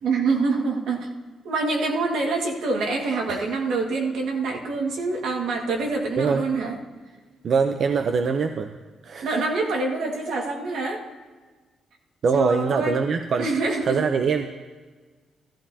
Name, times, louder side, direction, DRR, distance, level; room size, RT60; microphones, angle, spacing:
voice 1, 0.0-1.1 1.4-6.8 9.2-11.0 12.3-13.0 13.4-14.1, right 3 dB, 85° right, 1 dB, 1.8 m, -25 dB
voice 2, 7.4-8.7 9.0-9.5 12.2-13.5 13.9-14.5, right 5 dB, 55° right, 6 dB, 0.6 m, -23 dB
14.5 x 14.0 x 2.8 m, 1.4 s
cardioid pair, 105°, 0 cm